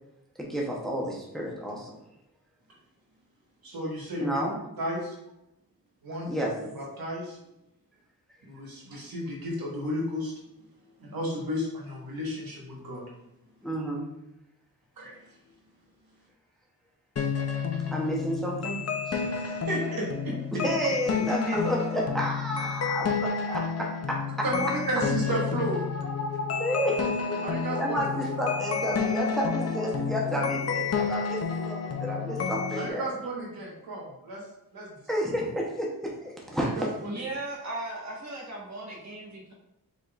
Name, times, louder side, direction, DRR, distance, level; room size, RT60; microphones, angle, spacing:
voice 1, 0.4-1.9 4.2-4.6 6.3-6.5 13.6-14.1 17.9-18.8 19.1-19.2 20.6-24.2 26.6-26.9 27.8-33.0 35.1-36.9, equal, ahead, -3 dB, 0.7 m, -30 dB
voice 2, 3.6-4.3 4.8-5.1 6.0-6.3 6.7-7.4 8.5-10.3 11.0-13.0 15.0-15.1 19.4-20.6 21.5-21.6 24.4-25.8 26.7-28.3 32.7-34.4 34.7-34.9 36.6-37.1, equal, 90° right, -2 dB, 1.3 m, -33 dB
sound 1, 17.2-32.9, left 5 dB, 45° left, 0.5 m, -30 dB
voice 3, 37.0-39.5, right 2 dB, 50° right, -3 dB, 1.3 m, -37 dB
4.9 x 4.0 x 2.4 m, 0.87 s
wide cardioid pair, 155°, 35 cm